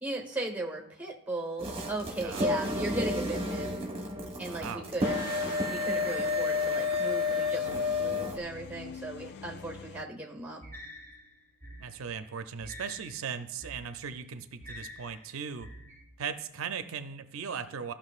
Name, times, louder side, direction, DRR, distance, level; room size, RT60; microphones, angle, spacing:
voice 1, 0.0-3.7 4.4-5.2 5.7-7.7 8.0-10.6, right 2 dB, 5° right, 1 dB, 1.1 m, -37 dB
sound 1, 1.6-8.4, left 3 dB, 25° right, 1.0 m, -31 dB
voice 2, 2.2-2.6 4.4-4.9 11.8-15.7 16.2-17.9, right 6 dB, 80° right, 9 dB, 0.5 m, -38 dB
sound 2, 5.0-10.0, left 6 dB, 50° left, 0.3 m, -43 dB
sound 3, 10.6-16.0, left 1 dB, 10° left, 1.6 m, -48 dB
14.5 x 5.7 x 2.4 m, 0.75 s
head